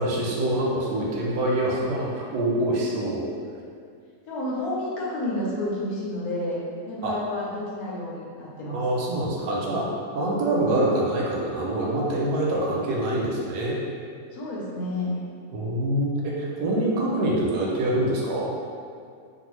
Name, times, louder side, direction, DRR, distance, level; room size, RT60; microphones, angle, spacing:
voice 1, 0.0-3.3 7.0-7.1 8.7-9.9 10.1-13.8 15.5-18.5, right 1 dB, 75° right, -3 dB, 1.1 m, -25 dB
voice 2, 4.3-6.6 6.9-8.8 14.3-15.2, left 1 dB, 70° left, -6 dB, 1.1 m, -30 dB
2.6 x 2.6 x 3.0 m, 2.3 s
omnidirectional pair, 1.8 m